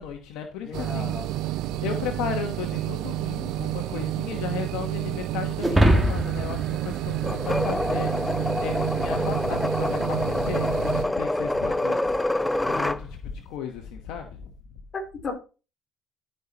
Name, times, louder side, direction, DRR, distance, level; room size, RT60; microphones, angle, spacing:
voice 1, 0.0-12.2 12.6-14.5, left 7 dB, 80° left, 5 dB, 1.1 m, -35 dB
voice 2, 0.6-1.5 7.1-7.2 14.9-15.3, left 3 dB, 45° left, 2 dB, 3.7 m, -35 dB
sound 1, 0.7-11.1, right 16 dB, 75° right, 0.4 m, -30 dB
sound 2, 5.6-8.1, equal, 10° right, 2.1 m, -23 dB
sound 3, 7.2-13.0, left 1 dB, 10° left, 0.4 m, -26 dB
14.0 x 5.5 x 2.9 m, 0.33 s
supercardioid pair, 85°, 0 cm